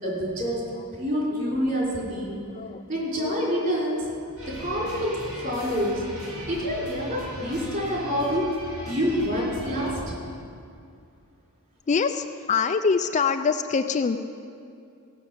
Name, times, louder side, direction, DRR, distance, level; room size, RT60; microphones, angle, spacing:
voice 1, 0.0-2.4 2.9-4.1 4.4-6.0 6.5-8.5 8.9-10.0, equal, 40° right, -4 dB, 3.9 m, -27 dB
voice 2, 1.3-1.7 2.2-2.3 2.5-2.8 3.2-3.6 4.8-4.9 5.8-5.9 7.0-7.1 7.7-8.0 11.9-14.2, left 5 dB, 35° left, 8 dB, 0.4 m, -26 dB
sound 1, 4.4-9.9, right 1 dB, 70° right, 2.5 m, -39 dB
15.0 x 6.3 x 8.2 m, 2.4 s
head